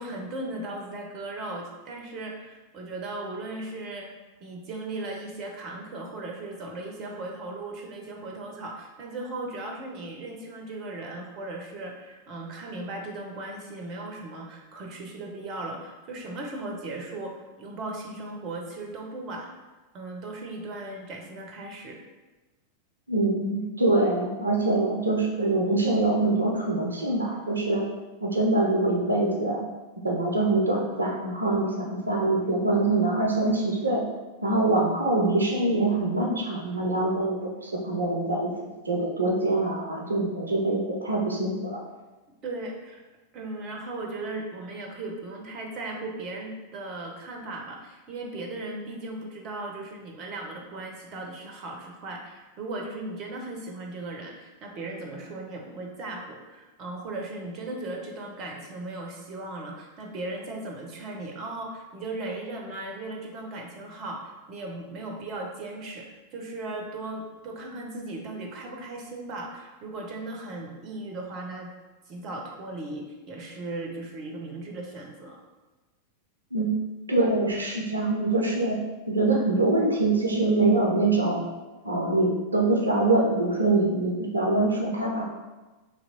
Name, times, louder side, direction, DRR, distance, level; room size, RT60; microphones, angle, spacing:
voice 1, 0.0-4.1 4.4-19.5 19.9-22.0 42.4-43.0 43.3-71.7 72.1-75.4, right 2 dB, 35° right, 1 dB, 0.7 m, -37 dB
voice 2, 23.1-27.8 28.2-29.6 30.0-34.0 34.4-38.5 38.8-41.8 76.5-76.7 77.1-78.8 79.1-81.4 81.8-85.2, right 2 dB, 75° right, -1 dB, 0.6 m, -24 dB
2.9 x 2.9 x 4.2 m, 1.2 s
figure-of-eight pair, 90°, 0 cm